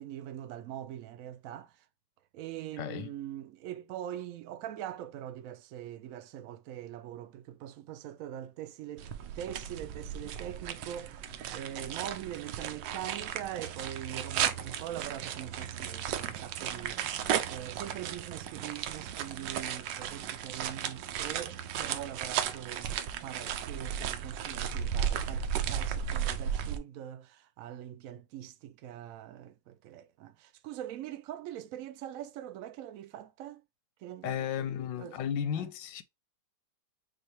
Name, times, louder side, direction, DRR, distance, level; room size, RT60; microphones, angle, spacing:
voice 1, 0.0-1.7 2.3-9.1 9.4-22.9 23.2-33.6 34.0-34.7 35.0-35.7, right 11 dB, 70° right, 0.8 m, -42 dB
voice 2, 2.8-3.1 34.2-36.0, left 9 dB, 85° left, 1.3 m, -34 dB
sound 1, 9.0-26.8, right 9 dB, 90° right, 1.3 m, -35 dB
6.3 x 2.4 x 3.0 m
omnidirectional pair, 1.9 m